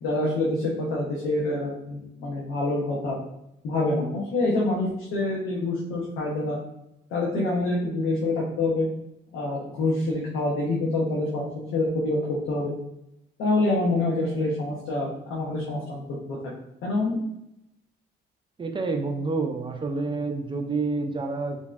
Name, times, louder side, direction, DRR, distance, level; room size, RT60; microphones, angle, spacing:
voice 1, 0.0-3.2 3.6-6.6 7.1-8.9 9.3-12.7 13.4-16.4 16.8-17.2, left 2 dB, 90° left, -4 dB, 0.7 m, -26 dB
voice 2, 18.6-21.6, right 3 dB, 25° right, 3 dB, 0.4 m, -28 dB
3.0 x 2.6 x 2.3 m, 0.84 s
cardioid pair, 90°, 20 cm